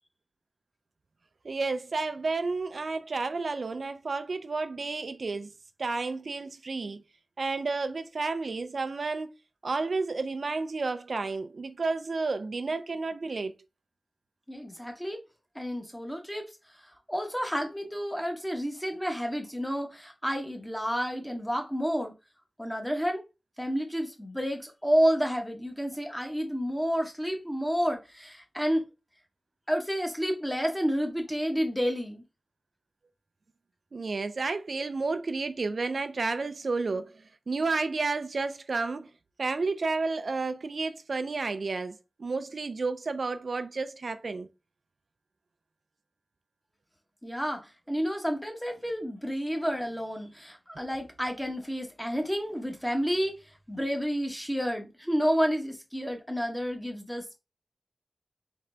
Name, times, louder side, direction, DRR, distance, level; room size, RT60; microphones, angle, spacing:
voice 1, 1.4-5.5 5.8-7.0 7.4-9.3 9.6-13.5 33.9-39.1 39.4-44.5, right 3 dB, 65° right, 0.3 m, -31 dB
voice 2, 14.5-15.2 15.5-16.5 17.1-22.1 22.6-23.2 23.6-28.9 29.7-32.2 47.2-53.4 53.7-57.4, equal, 5° left, 1.0 m, -30 dB
3.8 x 3.3 x 3.2 m
wide cardioid pair, 100°, 0 cm